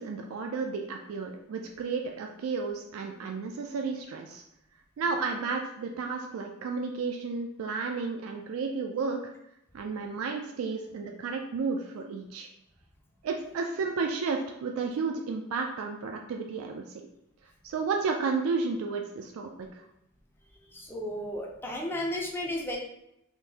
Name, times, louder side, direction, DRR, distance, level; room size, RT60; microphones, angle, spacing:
voice 1, 0.0-4.4 5.0-9.2 9.7-12.5 13.2-17.0 17.6-19.9, right 4 dB, 80° right, 3 dB, 0.3 m, -32 dB
voice 2, 20.7-22.8, left 1 dB, 10° left, -1 dB, 0.5 m, -33 dB
3.7 x 2.5 x 2.7 m, 0.82 s
head